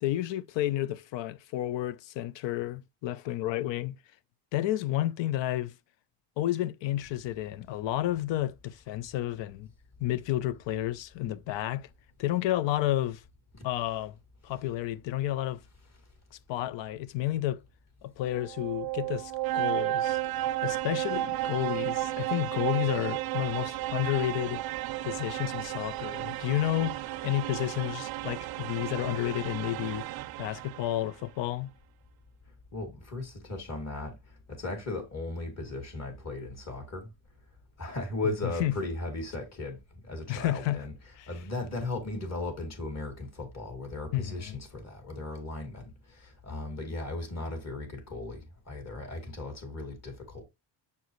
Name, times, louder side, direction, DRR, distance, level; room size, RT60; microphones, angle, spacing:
voice 1, 0.0-4.0 4.5-5.7 6.4-9.7 10.0-11.9 12.2-13.2 13.6-14.2 14.4-15.6 16.3-17.6 18.0-20.2 20.6-24.6 25.0-30.1 30.4-31.7 38.4-38.7 40.3-40.8 41.2-41.3 44.1-44.6, left 14 dB, 70° left, 0.7 m, -31 dB
sound 1, 18.3-31.1, right 15 dB, 55° right, 0.5 m, -33 dB
voice 2, 32.7-34.1 34.5-37.1 37.8-39.8 40.1-40.9 41.3-48.4 48.7-50.4, left 2 dB, 35° left, 2.3 m, -36 dB
7.0 x 4.5 x 3.1 m
cardioid pair, 135°, 45 cm